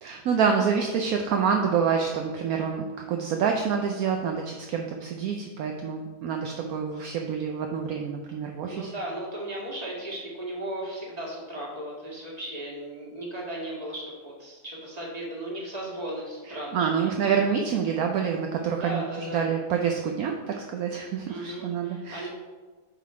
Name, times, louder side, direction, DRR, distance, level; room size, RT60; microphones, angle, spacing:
voice 1, 0.0-8.9 16.5-22.3, right 6 dB, 70° right, 3 dB, 1.0 m, -27 dB
voice 2, 8.6-17.1 18.8-19.5 21.3-22.3, right 1 dB, 25° right, -4 dB, 1.8 m, -36 dB
8.4 x 3.8 x 4.8 m, 1.3 s
omnidirectional pair, 1.8 m